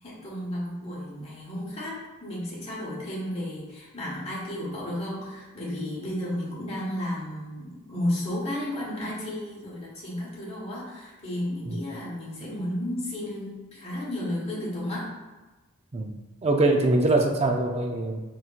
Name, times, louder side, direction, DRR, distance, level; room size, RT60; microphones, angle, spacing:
voice 1, 0.0-15.1, left 1 dB, 30° left, -6 dB, 1.2 m, -33 dB
voice 2, 16.4-18.2, right 2 dB, 30° right, 2 dB, 0.4 m, -23 dB
4.4 x 3.9 x 2.4 m, 1.2 s
head